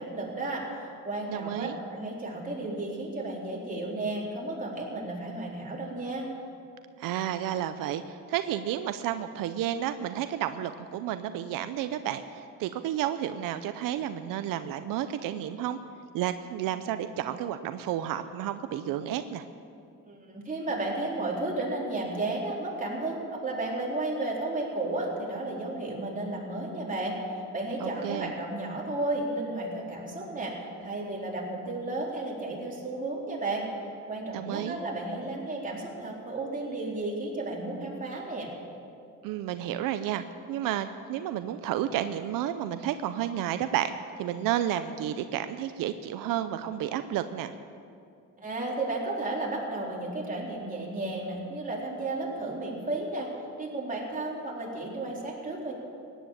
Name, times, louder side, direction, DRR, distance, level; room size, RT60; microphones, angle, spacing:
voice 1, 0.0-6.3 20.1-30.6 30.8-33.7 34.1-38.5 48.4-53.3 53.6-55.7, right 2 dB, 25° right, -3 dB, 3.9 m, -33 dB
voice 2, 1.3-1.8 7.0-15.8 16.1-19.4 27.8-28.3 34.3-34.8 39.2-47.5, right 11 dB, 90° right, 10 dB, 0.6 m, -31 dB
16.0 x 10.5 x 7.4 m, 2.4 s
cardioid pair, 100°, 32 cm